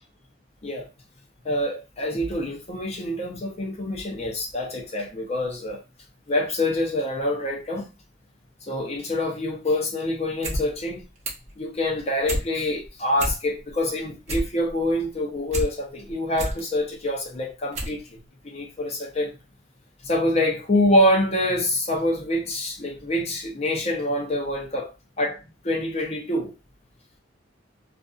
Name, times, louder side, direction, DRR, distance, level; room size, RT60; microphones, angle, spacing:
voice 1, 1.4-5.8 6.3-7.9 8.7-11.0 11.6-18.2 18.4-19.3 20.0-24.9 25.2-26.5, left 1 dB, 35° left, 0.7 m, -26 dB
sound 1, 10.2-10.6 10.9-11.5 11.9-12.5 12.8-12.9 13.1-13.7 14.0-15.7 16.1-16.6 17.2-17.3 17.7-18.0 18.3-18.4, right 1 dB, 35° right, 0.8 m, -29 dB
2.5 x 2.4 x 2.4 m
head